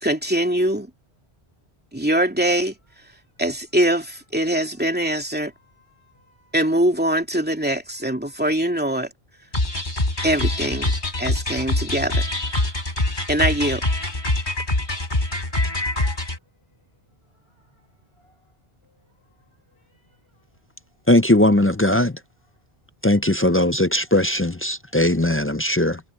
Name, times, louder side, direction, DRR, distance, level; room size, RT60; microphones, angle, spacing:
voice 1, 0.0-0.9 1.9-2.7 3.4-5.5 6.5-9.1 10.2-10.9 11.2-12.2 13.3-13.8, right 1 dB, 10° right, 2.7 m, -22 dB
voice 2, 5.4-6.6 14.7-15.0 15.7-16.4 17.4-18.4 18.8-18.9 19.3-20.6, left 2 dB, 85° left, 5.8 m, -63 dB
sound 1, 9.5-16.4, left 2 dB, 50° left, 3.8 m, -24 dB
voice 3, 21.1-22.1 23.0-26.0, left 1 dB, 20° left, 0.4 m, -19 dB
omnidirectional pair, 1.0 m